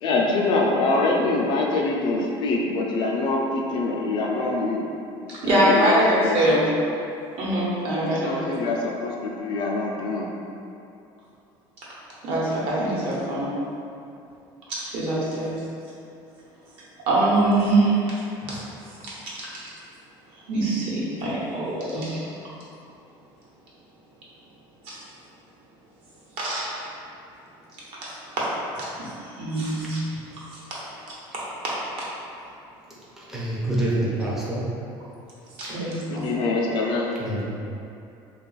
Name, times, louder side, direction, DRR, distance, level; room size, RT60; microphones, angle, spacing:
voice 1, 0.0-4.8 5.4-6.6 8.0-10.3 35.7-37.1, left 2 dB, 45° left, -1 dB, 0.4 m, -25 dB
voice 2, 5.3-6.6 7.4-8.5 12.2-13.5 14.8-15.5 17.1-18.0 18.5-18.6 20.5-22.2 24.9-25.0 26.4-26.7 28.0-28.5 28.7-28.9 29.4-30.0 30.5-30.6 31.3-31.7 35.6-36.3, right 1 dB, 65° right, -7 dB, 1.1 m, -23 dB
voice 3, 33.2-34.6 35.6-35.7 37.2-37.4, right 1 dB, 5° right, -7 dB, 0.5 m, -26 dB
3.4 x 2.3 x 3.9 m, 2.6 s
cardioid pair, 160°, 11 cm